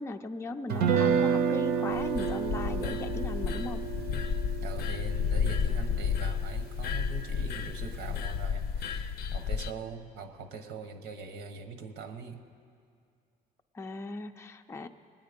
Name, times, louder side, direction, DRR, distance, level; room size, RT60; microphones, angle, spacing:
voice 1, 0.0-3.8 13.7-14.9, left 2 dB, 15° left, 5 dB, 0.4 m, -38 dB
Guitar, 0.7-6.8, right 6 dB, 70° right, 0.8 m, -30 dB
sound 1, 1.9-9.7, left 6 dB, 70° left, 0.5 m, -32 dB
voice 2, 4.6-12.4, right 5 dB, 85° right, 7 dB, 1.0 m, -42 dB
20.5 x 8.9 x 5.1 m, 2.3 s
cardioid pair, 110°, 17 cm